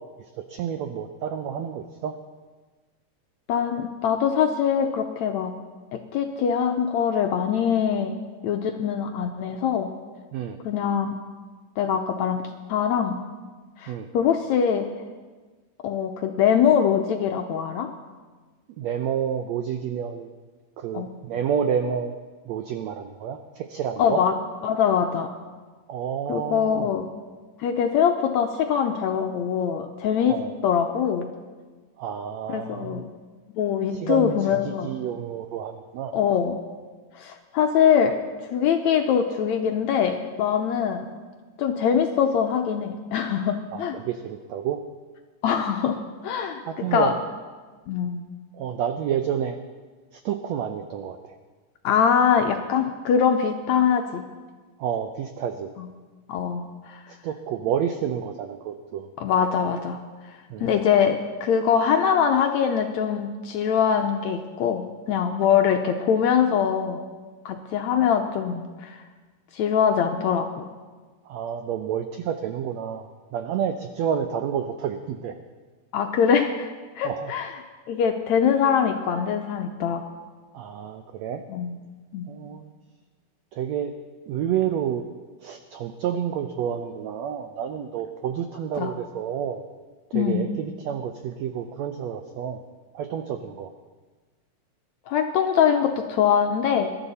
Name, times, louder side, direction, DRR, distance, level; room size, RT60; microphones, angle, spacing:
voice 1, 0.5-2.1 10.3-10.6 13.9-14.1 18.8-20.3 20.8-22.1 22.5-24.2 25.9-26.9 30.3-30.6 32.0-33.0 33.9-36.1 43.7-44.8 46.7-47.1 48.6-49.6 50.1-51.4 54.8-55.7 57.1-59.1 60.5-60.7 71.3-75.3 77.0-77.3 80.5-81.4 82.3-82.7 83.5-83.9 84.3-85.0 85.4-89.6 90.1-92.6 92.9-93.7, right 8 dB, 85° right, 7 dB, 1.5 m, -29 dB
voice 2, 3.5-5.6 5.9-9.9 10.6-11.2 11.8-13.2 13.8-14.9 15.8-17.9 20.9-21.1 24.0-24.3 24.6-25.3 26.3-27.1 27.6-31.3 32.5-33.1 33.6-34.9 36.1-36.6 37.2-38.2 38.5-41.1 41.6-44.0 45.4-47.1 47.9-48.2 51.8-54.2 55.8-55.9 56.3-57.0 59.2-60.0 60.6-67.0 67.5-69.0 69.5-70.7 75.9-76.7 77.0-77.5 77.9-80.0 81.5-81.8 82.1-82.3 88.8-88.9 90.1-90.5 95.1-97.0, left 7 dB, 75° left, 4 dB, 1.7 m, -23 dB
21.5 x 12.5 x 4.1 m, 1.4 s
omnidirectional pair, 3.9 m